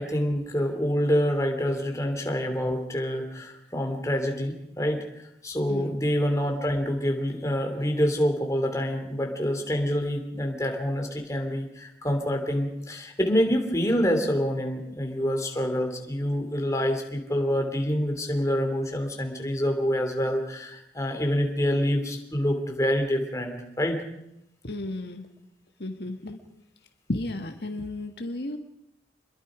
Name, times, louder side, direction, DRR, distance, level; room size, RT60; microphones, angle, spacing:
voice 1, 0.0-24.0, equal, 20° left, 3 dB, 3.0 m, -27 dB
voice 2, 5.7-6.0 24.6-25.3 25.8-26.4 27.1-28.6, left 2 dB, 70° left, 5 dB, 1.7 m, -33 dB
26.5 x 22.0 x 5.1 m, 0.80 s
head